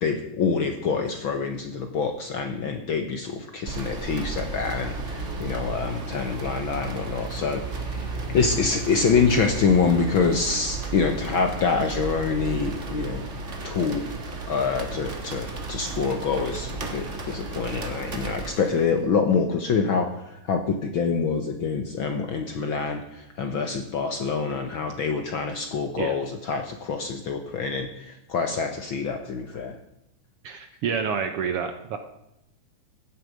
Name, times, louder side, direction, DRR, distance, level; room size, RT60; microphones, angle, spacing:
voice 1, 0.0-13.2 13.6-14.0 14.5-29.8, left 5 dB, 60° left, 5 dB, 1.4 m, -26 dB
sound 1, 3.6-19.0, right 3 dB, 35° right, 1.3 m, -34 dB
voice 2, 30.4-32.0, right 6 dB, 65° right, 7 dB, 1.6 m, -28 dB
16.0 x 10.0 x 5.1 m, 0.83 s
omnidirectional pair, 3.4 m